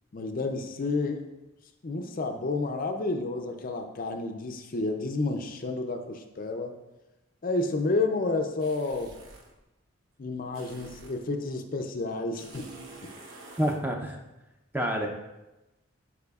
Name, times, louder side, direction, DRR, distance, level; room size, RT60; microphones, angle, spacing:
voice 1, 0.1-1.3 1.8-6.8 7.4-9.1 10.2-12.7, left 3 dB, 40° left, 5 dB, 0.5 m, -30 dB
sound 1, 8.6-9.5 10.5-11.3 12.4-13.8, right 2 dB, 65° right, 0.9 m, -47 dB
voice 2, 13.6-14.2 14.7-15.1, equal, 10° right, 2 dB, 0.5 m, -27 dB
12.0 x 4.9 x 2.4 m, 1.0 s
head